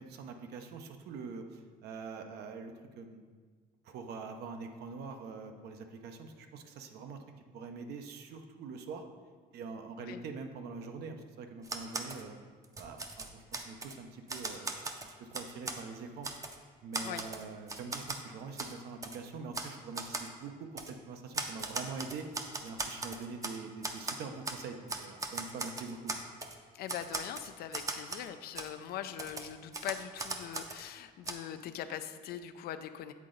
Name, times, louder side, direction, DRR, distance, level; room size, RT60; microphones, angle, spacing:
voice 1, 0.0-3.2 3.8-7.2 7.5-9.0 9.5-12.4 12.7-16.3 16.8-26.1, right 4 dB, 75° right, 6 dB, 0.7 m, -44 dB
Typewriter, 11.6-12.2 12.6-14.0 14.3-15.8 16.2-16.6 16.9-18.2 18.6-18.7 19.0-19.2 19.5-19.7 20.0-20.3 20.8-20.9 21.3-23.6 23.8-24.6 24.9-26.6 26.9-28.3 28.6-28.7 29.2-30.8 31.3-31.4, right 3 dB, 20° right, 0.5 m, -38 dB
voice 2, 26.7-33.1, left 10 dB, 65° left, 10 dB, 0.4 m, -41 dB
8.3 x 3.8 x 3.8 m, 1.5 s
cardioid pair, 110°, 17 cm